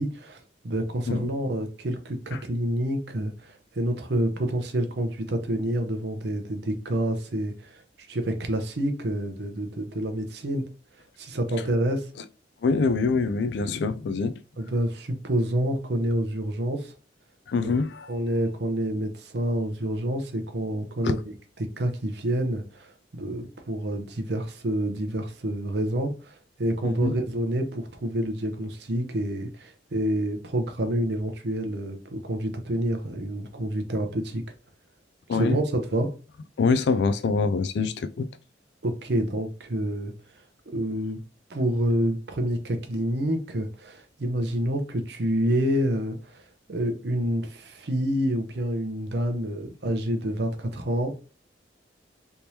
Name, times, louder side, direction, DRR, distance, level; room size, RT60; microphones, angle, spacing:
voice 1, 0.0-7.8 8.1-10.6 11.2-12.1 14.6-16.9 18.1-21.3 21.6-34.4 35.3-36.1 38.8-40.1 40.7-41.2 41.5-46.4 46.7-51.2, right 1 dB, 60° right, 0.7 m, -28 dB
voice 2, 12.6-14.3 17.5-18.2 21.0-21.1 26.8-27.2 35.3-35.6 36.6-38.3, left 4 dB, 65° left, 0.3 m, -25 dB
3.4 x 3.0 x 2.8 m
head